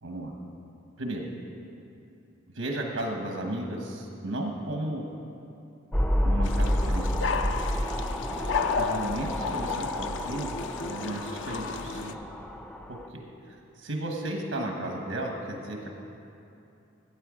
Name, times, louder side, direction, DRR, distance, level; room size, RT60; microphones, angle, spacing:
voice 1, 0.0-0.3 1.0-1.3 2.5-5.0 6.2-7.5 8.7-12.2 12.9-15.9, right 1 dB, 90° right, 2 dB, 1.1 m, -34 dB
sound 1, 5.9-13.1, equal, 5° left, 0.4 m, -30 dB
sound 2, 6.4-12.1, left 5 dB, 65° left, 0.4 m, -33 dB
12.0 x 8.6 x 4.9 m, 2.8 s
head